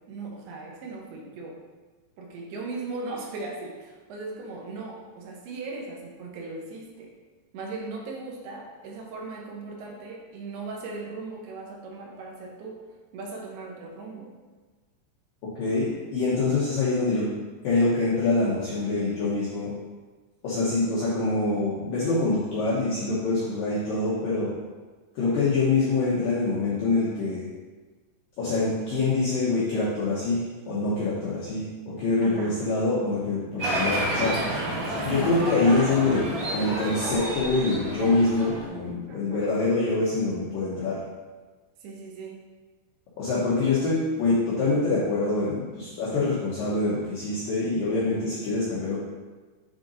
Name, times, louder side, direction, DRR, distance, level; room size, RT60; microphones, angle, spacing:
voice 1, 0.1-1.6 2.2-7.1 7.5-12.8 13.1-14.3 32.2-32.6 39.1-39.5 41.8-42.4, right 3 dB, 70° right, -1 dB, 2.6 m, -38 dB
voice 2, 15.6-17.3 17.6-19.7 20.4-24.5 25.2-27.4 28.4-34.4 35.0-41.0 43.2-49.0, left 3 dB, 80° left, -8 dB, 2.0 m, -25 dB
Applause, 33.6-38.7, right 1 dB, 45° right, 2.5 m, -29 dB
7.9 x 3.8 x 3.9 m, 1.3 s
omnidirectional pair, 5.5 m